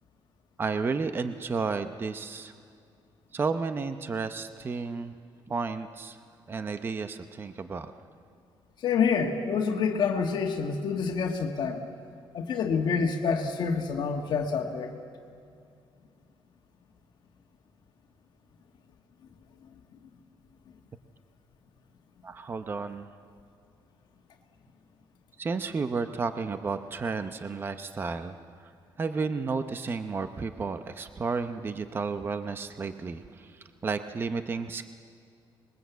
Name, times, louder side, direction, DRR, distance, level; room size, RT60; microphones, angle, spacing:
voice 1, 0.6-2.5 3.3-5.1 5.5-6.2 6.5-7.9 22.2-23.1 25.4-28.4 29.0-33.5 33.8-34.9, right 4 dB, 25° right, 9 dB, 0.7 m, -32 dB
voice 2, 8.8-11.8 12.3-14.9, left 5 dB, 55° left, 3 dB, 1.7 m, -27 dB
26.5 x 21.5 x 8.1 m, 2.4 s
cardioid pair, 165°, 9 cm